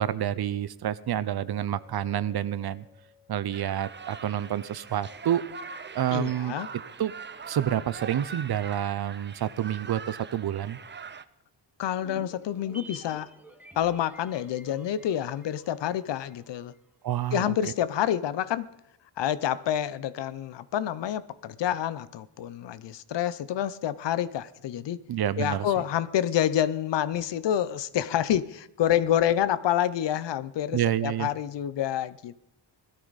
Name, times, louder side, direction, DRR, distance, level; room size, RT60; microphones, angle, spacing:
voice 1, 0.0-2.8 3.3-5.4 5.9-6.5 7.0-7.1 7.5-10.8 17.0-17.5 25.1-25.7 30.7-31.3, right 11 dB, 60° right, 0.7 m, -28 dB
Chink clink, 1.7-5.7, left 6 dB, 80° right, 2.6 m, -61 dB
sound 1, 3.5-11.2, right 5 dB, 25° right, 0.6 m, -42 dB
voice 2, 6.1-6.7 11.8-13.3 13.8-16.7 17.3-18.7 19.2-25.0 25.4-32.4, left 11 dB, 80° left, 0.7 m, -28 dB
sound 2, 12.0-16.5 16.7-16.8, right 1 dB, 5° right, 1.3 m, -49 dB
17.5 x 13.0 x 4.1 m
cardioid pair, 105°, 42 cm